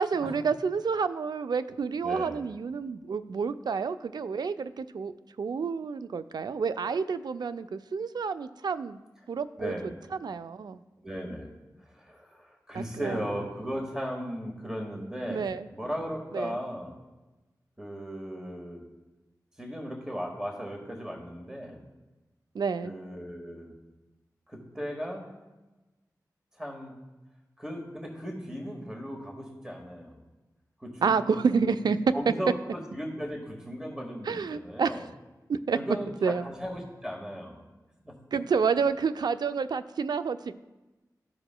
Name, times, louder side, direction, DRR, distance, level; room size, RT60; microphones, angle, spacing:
voice 1, 0.0-9.0 9.3-9.7 10.2-10.8 12.7-13.2 15.3-15.6 16.3-16.6 22.5-22.9 31.0-32.0 34.3-35.0 35.5-35.8 36.2-36.5 38.3-40.5, right 5 dB, 75° right, 12 dB, 0.4 m, -29 dB
voice 2, 2.0-2.4 9.6-9.9 11.0-11.5 11.8-15.5 15.7-16.9 17.8-18.8 19.6-21.8 22.8-23.7 24.5-25.3 26.6-26.9 27.6-30.2 30.8-31.2 31.5-31.7 32.1-35.1 35.7-37.6 38.0-38.1, equal, 10° right, 0 dB, 1.6 m, -36 dB
14.5 x 4.9 x 2.2 m, 1.1 s
cardioid pair, 45°, 7 cm